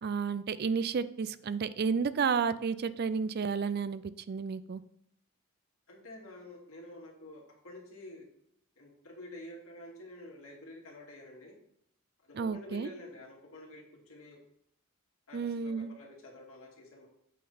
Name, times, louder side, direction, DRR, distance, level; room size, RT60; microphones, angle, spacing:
voice 1, 0.0-4.8 12.3-12.9 15.3-15.9, right 5 dB, 50° right, 15 dB, 0.4 m, -32 dB
voice 2, 5.9-8.3 8.8-11.6 12.2-14.4 15.3-17.1, left 1 dB, 75° left, -2 dB, 2.5 m, -49 dB
8.3 x 5.8 x 4.2 m, 0.73 s
head